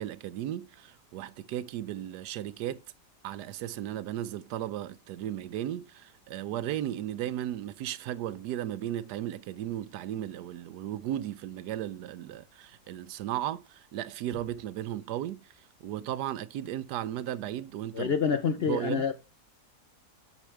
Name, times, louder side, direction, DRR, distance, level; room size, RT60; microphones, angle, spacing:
voice 1, 0.0-2.8 3.2-18.1 18.7-19.1, right 12 dB, 80° right, 1.2 m, -35 dB
voice 2, 17.9-19.1, left 6 dB, 55° left, 0.7 m, -27 dB
8.2 x 6.1 x 3.2 m
omnidirectional pair, 1.8 m